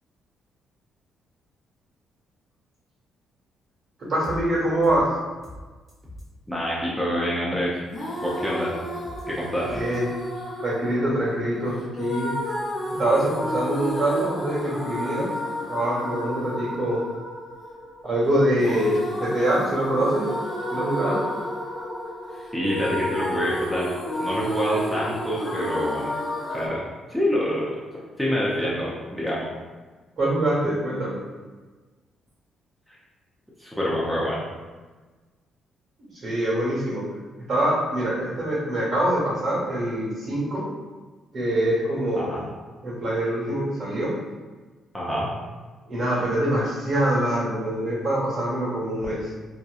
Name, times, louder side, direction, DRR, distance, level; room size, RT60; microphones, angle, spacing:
voice 1, 4.1-5.1 9.1-9.2 9.7-10.1 10.6-12.5 13.0-15.3 15.7-17.0 18.0-20.3 20.7-21.2 30.2-31.2 36.0-37.1 37.5-40.7 41.3-42.4 42.8-44.1 45.9-49.3, right 1 dB, 55° right, -6 dB, 1.3 m, -24 dB
sound 1, 4.2-4.4 4.8-5.0 5.4-5.6 5.9-6.2 9.0-9.2 9.6-10.0, left 1 dB, 30° right, 0.8 m, -40 dB
voice 2, 6.5-7.8 8.2-8.7 9.3-9.9 22.5-23.9 24.2-26.1 26.5-26.8 27.1-27.8 28.2-29.5 33.6-34.4 42.2-42.4 44.9-45.3, equal, ahead, -6 dB, 0.5 m, -26 dB
sound 2, 7.9-26.7, equal, 45° left, 0.6 m, -32 dB
2.8 x 2.2 x 2.3 m, 1.3 s
cardioid pair, 90°, 0 cm